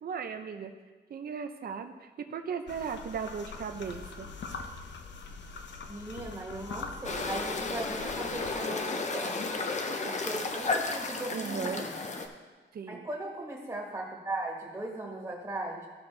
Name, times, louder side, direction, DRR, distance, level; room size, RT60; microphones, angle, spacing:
voice 1, 0.0-0.7 1.1-4.3 11.3-11.9 12.7-13.1, right 6 dB, 55° right, 6 dB, 0.6 m, -37 dB
sound 1, 2.7-8.5, left 4 dB, 75° left, 0.8 m, -43 dB
voice 2, 5.9-9.6 10.0-11.9 12.9-15.9, right 2 dB, 20° right, -3 dB, 1.4 m, -38 dB
sound 2, 7.0-12.3, left 3 dB, 40° left, 0.7 m, -33 dB
15.0 x 5.6 x 3.3 m, 1.3 s
wide cardioid pair, 160°, 19 cm